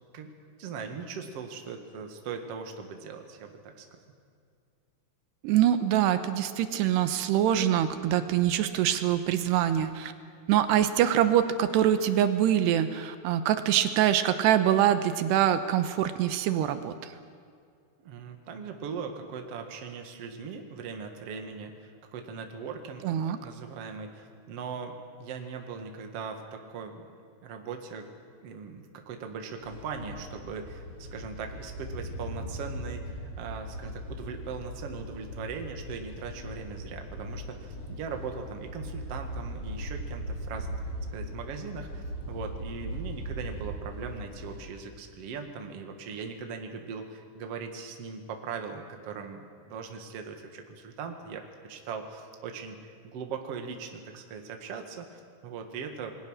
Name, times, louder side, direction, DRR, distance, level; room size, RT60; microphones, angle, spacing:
voice 1, 0.6-4.0 18.0-27.0 27.4-28.1 28.4-40.8 41.1-56.2, right 5 dB, 45° right, 4 dB, 2.2 m, -40 dB
voice 2, 5.4-10.1 10.5-17.1 23.0-23.4, right 11 dB, 85° right, 10 dB, 3.0 m, -24 dB
sound 1, 29.6-44.6, equal, 35° left, 6.3 m, -39 dB
28.0 x 21.0 x 6.5 m, 2.2 s
omnidirectional pair, 4.8 m